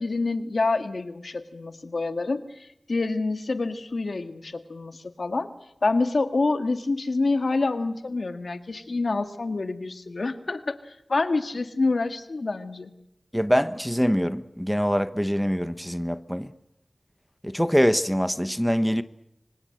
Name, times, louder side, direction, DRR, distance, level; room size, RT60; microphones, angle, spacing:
voice 1, 0.0-5.5 5.8-12.9, left 3 dB, 75° left, 1.8 m, -27 dB
voice 2, 13.3-16.5 17.4-19.0, equal, ahead, 1.1 m, -24 dB
25.5 x 25.5 x 7.7 m
wide cardioid pair, 60°, 0 cm